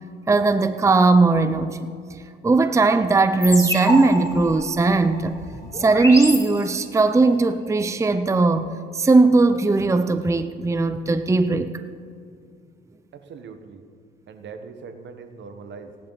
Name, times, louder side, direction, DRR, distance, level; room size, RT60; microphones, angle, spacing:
voice 1, 0.3-2.2 2.4-5.3 5.7-11.7, right 3 dB, 15° right, 10 dB, 0.6 m, -18 dB
sound 1, 3.4-7.1, equal, 15° left, 2.7 m, -29 dB
voice 2, 13.1-13.8 14.3-15.9, right 5 dB, 65° right, 8 dB, 1.2 m, -40 dB
17.5 x 11.0 x 4.0 m, 2.3 s
cardioid pair, 90°, 20 cm